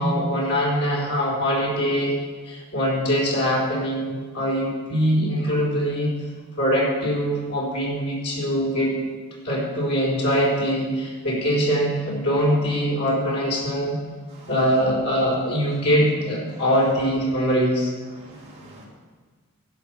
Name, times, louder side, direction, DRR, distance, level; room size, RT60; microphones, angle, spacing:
voice 1, 0.0-2.2 2.4-6.1 6.6-8.9 9.4-14.0 14.5-17.9, equal, 85° left, -4 dB, 4.0 m, -22 dB
voice 2, 18.1-18.9, right 1 dB, 30° right, -5 dB, 2.7 m, -46 dB
11.5 x 8.3 x 6.0 m, 1.4 s
head